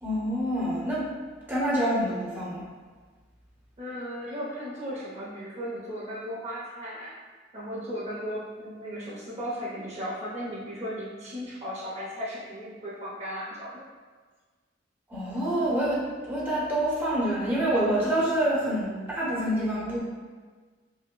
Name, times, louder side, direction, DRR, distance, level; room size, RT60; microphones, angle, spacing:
voice 1, 0.0-1.1 1.5-2.7 15.1-20.0, right 1 dB, 10° right, -8 dB, 0.9 m, -27 dB
voice 2, 3.8-7.1 7.5-13.8, equal, 35° right, -7 dB, 0.7 m, -36 dB
5.3 x 2.1 x 2.2 m, 1.4 s
head